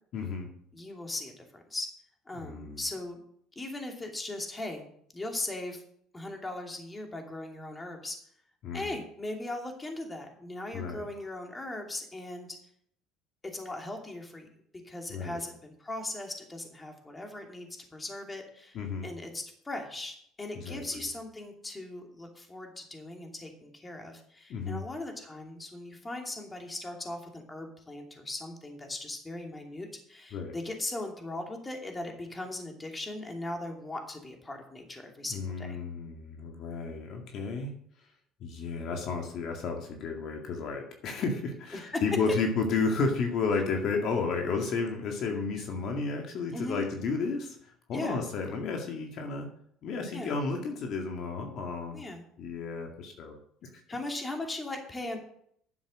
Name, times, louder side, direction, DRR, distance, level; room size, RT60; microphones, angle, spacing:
voice 1, 0.1-0.5 2.3-2.8 8.6-8.9 10.7-11.0 15.1-15.4 18.7-19.1 20.6-21.0 24.5-24.8 30.3-30.5 35.3-37.7 38.4-49.5 49.8-52.0 52.4-53.8, left 4 dB, 60° left, 3 dB, 2.1 m, -32 dB
voice 2, 0.7-1.9 2.3-3.2 3.6-4.8 5.1-5.8 6.1-8.2 8.7-12.5 13.4-14.5 14.8-18.8 19.0-35.8 41.7-42.0 46.5-46.8 47.9-48.2 50.1-50.4 51.9-52.2 53.9-55.2, left 2 dB, 20° left, 2 dB, 2.7 m, -38 dB
10.5 x 7.2 x 6.4 m, 0.66 s
supercardioid pair, 95°, 0 cm